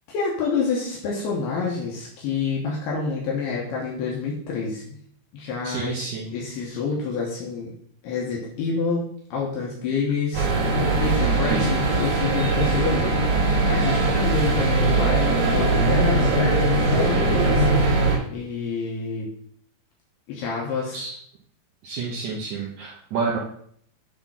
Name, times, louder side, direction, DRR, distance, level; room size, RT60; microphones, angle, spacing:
voice 1, 0.1-5.0 5.3-7.7 8.0-19.3 20.3-21.0, left 5 dB, 75° left, -3 dB, 3.1 m, -28 dB
voice 2, 5.6-6.3 11.5-11.7 20.9-21.2 21.8-23.4, right 4 dB, 90° right, -2 dB, 1.6 m, -29 dB
sound 1, 10.3-18.2, right 2 dB, 50° right, 3.3 m, -20 dB
8.9 x 3.6 x 5.8 m, 0.63 s
omnidirectional pair, 4.8 m